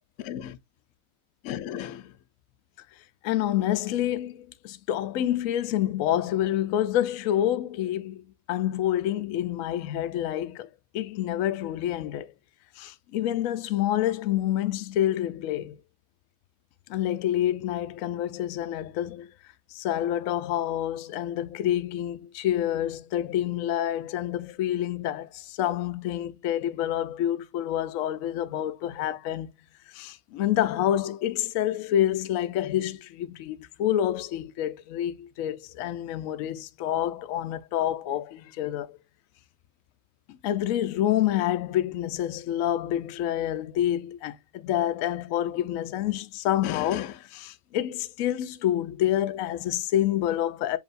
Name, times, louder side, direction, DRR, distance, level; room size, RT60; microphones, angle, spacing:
voice 1, 0.2-0.6 1.4-2.1 3.2-10.7 10.9-12.3 12.8-15.8 16.9-19.3 19.7-29.5 29.9-39.0 40.3-50.8, left 12 dB, 65° left, 0.8 m, -28 dB
7.3 x 2.7 x 2.5 m
omnidirectional pair, 1.9 m